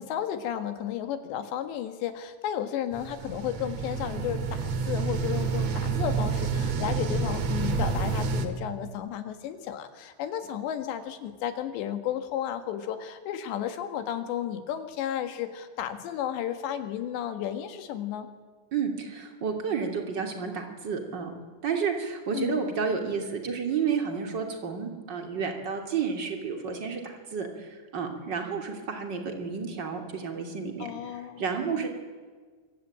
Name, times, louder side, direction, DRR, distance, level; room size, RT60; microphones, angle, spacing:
voice 1, 0.0-18.3 22.3-22.6 30.8-31.9, left 10 dB, 75° left, 8 dB, 3.9 m, -33 dB
sound 1, 2.9-8.5, right 4 dB, 50° right, 2.2 m, -29 dB
voice 2, 18.7-21.3 21.6-31.9, right 6 dB, 30° right, 4 dB, 2.9 m, -31 dB
25.0 x 23.0 x 8.8 m, 1.5 s
omnidirectional pair, 5.1 m